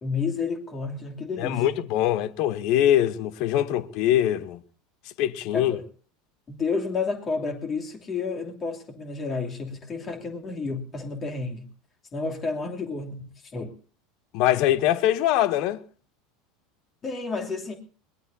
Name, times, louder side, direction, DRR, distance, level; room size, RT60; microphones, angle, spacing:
voice 1, 0.0-1.8 5.5-5.8 6.5-11.7 12.1-13.7 17.0-17.7, left 4 dB, 30° left, 2.8 m, -31 dB
voice 2, 1.4-4.6 5.2-5.8 14.3-15.8, left 12 dB, 55° left, 0.8 m, -23 dB
22.0 x 18.0 x 2.7 m
figure-of-eight pair, 75°, 0 cm